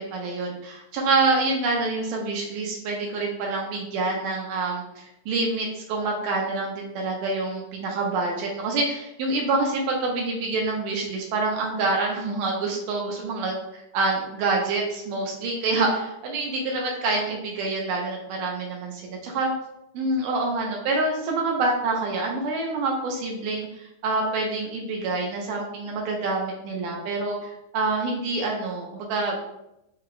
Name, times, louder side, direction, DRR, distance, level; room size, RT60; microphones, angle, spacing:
voice 1, 0.0-19.5 19.9-29.4, right 3 dB, 90° right, 0 dB, 2.3 m, -27 dB
5.6 x 2.2 x 3.8 m, 0.86 s
omnidirectional pair, 3.7 m